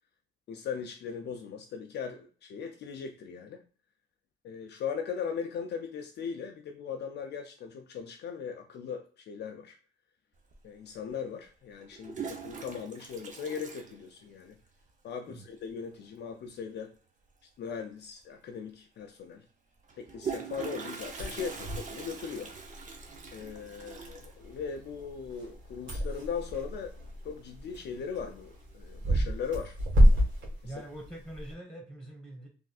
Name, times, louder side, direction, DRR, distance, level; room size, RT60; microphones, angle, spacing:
voice 1, 0.5-3.6 4.4-9.8 10.6-14.6 15.0-16.9 17.6-19.4 20.0-22.5 23.3-26.9 27.2-29.8 30.8-30.9, left 6 dB, 60° left, 4 dB, 0.4 m, -39 dB
Toilet flush, 10.5-10.6 11.8-14.6 14.9-15.0 15.3-15.4 15.6-16.0 17.8-17.9 18.2-18.3 19.8-26.5 26.8-27.3 27.7-28.2 28.6-29.6, right 3 dB, 40° right, 0.7 m, -39 dB
sound 1, 21.0-31.5, equal, 70° right, 1.4 m, -30 dB
voice 2, 30.6-32.5, right 1 dB, 5° left, 0 dB, 1.4 m, -44 dB
3.2 x 2.5 x 2.3 m, 0.40 s
cardioid pair, 90°, 20 cm